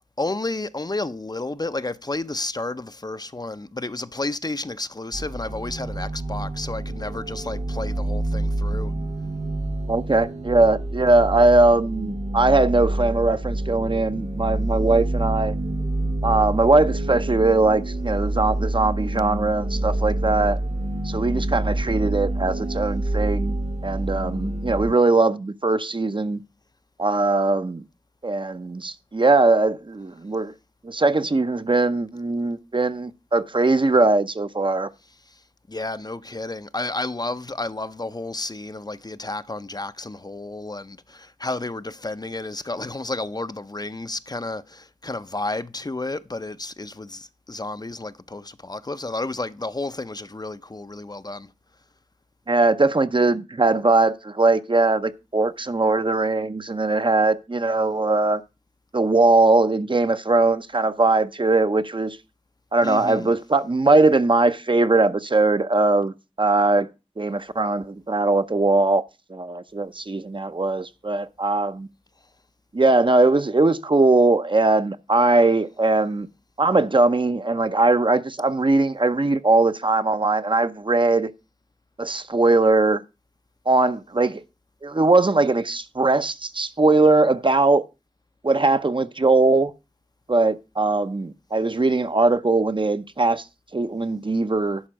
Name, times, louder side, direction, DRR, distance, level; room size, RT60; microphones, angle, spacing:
voice 1, 0.2-8.9 35.3-35.4 35.7-51.5 62.8-63.4, left 2 dB, 35° left, 0.5 m, -31 dB
sound 1, 5.1-24.9, right 1 dB, 70° right, 1.5 m, -27 dB
voice 2, 9.9-15.5 16.2-20.6 21.0-23.6 23.8-26.4 27.0-27.8 28.2-30.5 30.8-34.9 52.5-58.4 58.9-62.2 62.7-66.9 67.2-69.0 69.3-71.9 72.7-76.3 76.6-81.3 82.0-83.0 83.7-84.4 84.8-87.8 88.4-89.7 90.3-93.4 93.7-94.8, right 2 dB, 45° right, 0.6 m, -20 dB
11.0 x 4.4 x 6.2 m
wide cardioid pair, 50°, 12 cm